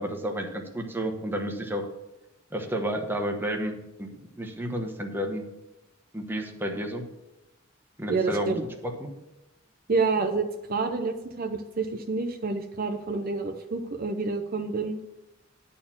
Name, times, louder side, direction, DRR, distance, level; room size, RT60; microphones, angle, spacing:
voice 1, 0.0-1.9 2.5-5.4 6.1-7.0 8.0-9.1, right 1 dB, 10° right, 3 dB, 1.1 m, -31 dB
voice 2, 8.1-8.7 9.9-15.0, right 4 dB, 45° right, 5 dB, 0.7 m, -28 dB
10.5 x 4.3 x 7.2 m, 0.98 s
head